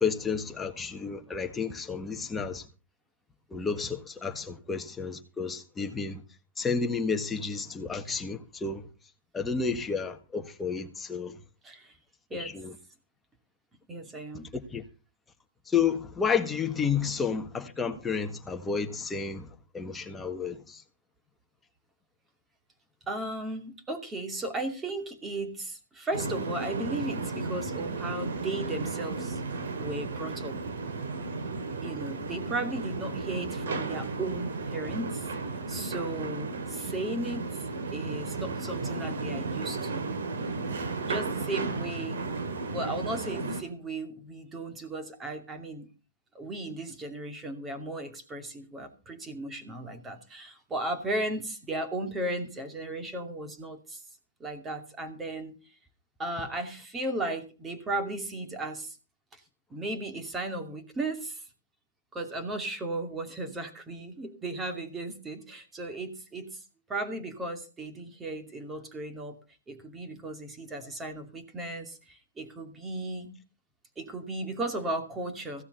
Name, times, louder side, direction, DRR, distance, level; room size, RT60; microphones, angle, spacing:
voice 1, 0.0-2.7 3.5-6.2 6.6-8.9 9.3-11.4 12.4-12.7 14.5-14.8 15.7-20.8, left 6 dB, 10° left, 1.6 m, -31 dB
voice 2, 13.9-14.5 23.1-29.4 29.8-30.6 31.8-35.3 35.7-37.6 37.9-40.0 41.1-42.3 42.7-45.9 46.3-54.0 54.4-55.6 56.2-59.0 59.3-59.4 59.7-61.4 62.1-66.6 66.9-69.4 69.7-73.3 74.0-75.6, right 2 dB, 15° right, 2.5 m, -35 dB
sound 1, 26.1-43.6, right 3 dB, 75° right, 2.9 m, -34 dB
16.0 x 7.0 x 6.8 m
hypercardioid pair, 130°, 0 cm